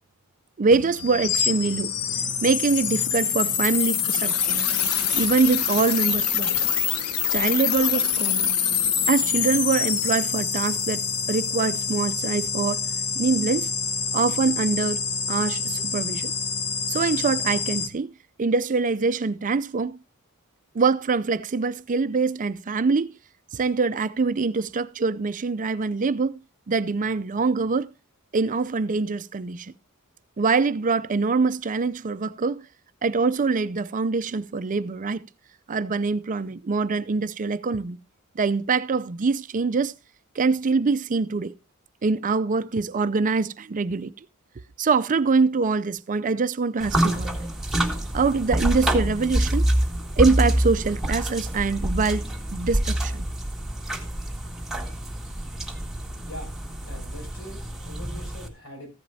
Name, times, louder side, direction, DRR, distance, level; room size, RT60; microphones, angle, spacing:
voice 1, 0.6-1.9 2.4-4.6 5.1-6.5 7.3-8.5 9.1-12.9 13.2-13.7 14.1-15.0 15.3-16.3 16.9-18.1 18.4-20.0 20.7-23.2 23.5-26.4 26.7-27.9 28.3-29.7 30.4-32.7 33.0-35.3 35.7-38.0 38.4-39.9 40.4-41.6 42.0-44.1 44.8-47.4 48.1-49.7 50.2-53.3, right 4 dB, 35° right, 0.5 m, -24 dB
sound 1, 0.7-17.9, left 7 dB, 90° left, 1.1 m, -26 dB
sound 2, 46.8-58.5, right 1 dB, ahead, 1.8 m, -27 dB
voice 2, 56.8-58.9, left 1 dB, 70° left, 6.8 m, -42 dB
14.5 x 10.5 x 2.7 m
head